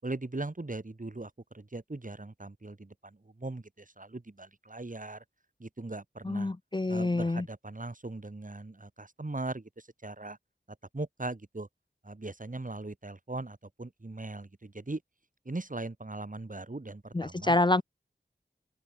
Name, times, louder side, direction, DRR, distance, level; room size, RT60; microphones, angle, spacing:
voice 1, 0.0-5.2 5.6-6.5 6.9-10.4 10.9-11.7 12.0-15.0 15.5-17.6, right 2 dB, 50° right, 7.5 m, -39 dB
voice 2, 6.2-7.5 17.1-17.8, left 2 dB, 25° left, 0.6 m, -27 dB
open air
wide cardioid pair, 60°, 17 cm